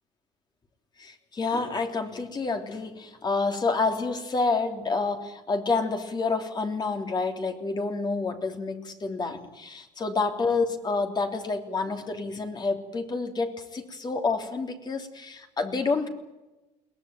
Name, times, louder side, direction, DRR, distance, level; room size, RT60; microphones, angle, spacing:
voice 1, 1.0-16.1, left 4 dB, 30° left, 4 dB, 3.4 m, -28 dB
22.5 x 18.5 x 9.2 m, 1.0 s
cardioid pair, 105°, 14 cm